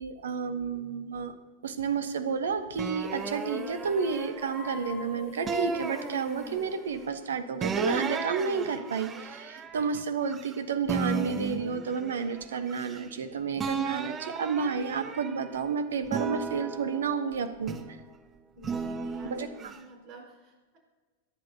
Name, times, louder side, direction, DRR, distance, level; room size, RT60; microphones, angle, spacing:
voice 1, 0.0-1.3 1.6-18.0 19.3-19.5, right 6 dB, 65° right, 10 dB, 1.0 m, -31 dB
sound 1, 2.8-4.9 5.5-6.8 7.6-10.6 10.9-13.2 13.6-15.6 16.1-18.0 18.6-19.8, right 5 dB, 25° right, 0.9 m, -35 dB
sound 2, 3.0-7.7, left 4 dB, 35° left, 2.5 m, -43 dB
voice 2, 18.5-20.8, right 2 dB, 40° right, 0 dB, 4.9 m, -51 dB
23.0 x 10.5 x 2.8 m, 1.4 s
figure-of-eight pair, 90°, 0 cm